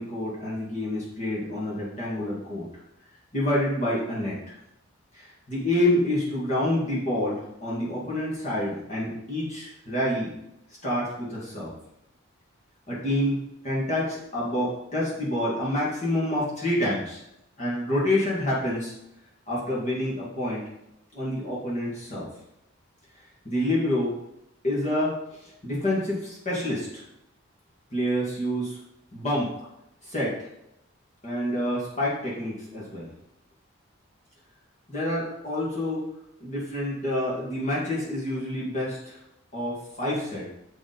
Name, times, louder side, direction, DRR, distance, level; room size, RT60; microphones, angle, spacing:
voice 1, 0.0-2.6 3.3-4.4 5.1-10.3 10.8-11.7 12.9-13.4 13.6-17.2 17.6-18.9 19.5-20.6 21.1-22.3 23.4-24.1 24.6-25.1 25.6-27.0 27.9-28.8 29.1-29.5 30.0-30.3 31.2-33.1 34.9-36.0 36.4-39.2 39.5-40.5, left 1 dB, 35° left, -6 dB, 2.1 m, -27 dB
7.5 x 5.3 x 5.2 m, 0.83 s
head